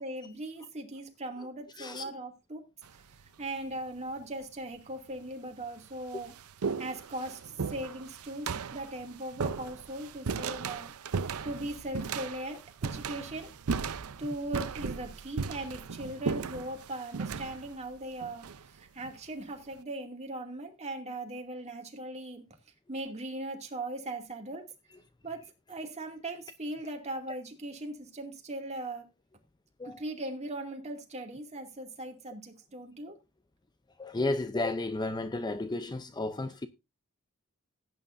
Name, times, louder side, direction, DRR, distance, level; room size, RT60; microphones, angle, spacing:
voice 1, 0.0-2.6 2.9-3.0 3.4-6.3 6.8-7.4 7.7-10.9 11.4-13.5 14.2-22.4 22.9-24.6 25.2-25.4 25.7-29.1 29.8-33.2, right 1 dB, 30° right, 2.5 m, -39 dB
sound 1, 2.8-3.3 4.2-4.3 5.2-5.3 5.6-19.2, right 5 dB, 80° right, 0.6 m, -36 dB
voice 2, 34.0-36.7, left 2 dB, 20° left, 0.6 m, -32 dB
16.5 x 9.2 x 2.6 m
head